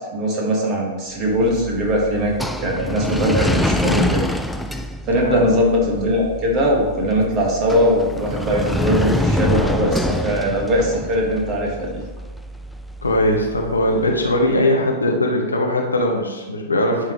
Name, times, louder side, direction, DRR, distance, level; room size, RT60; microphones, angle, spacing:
voice 1, 0.1-2.3 2.6-4.3 5.1-12.0, equal, 30° right, -2 dB, 1.8 m, -20 dB
sound 1, 1.3-14.4, left 1 dB, 5° left, 0.3 m, -26 dB
voice 2, 13.0-17.1, left 1 dB, 75° left, 1 dB, 1.1 m, -20 dB
11.0 x 3.7 x 3.2 m, 1.2 s
figure-of-eight pair, 100°, 0 cm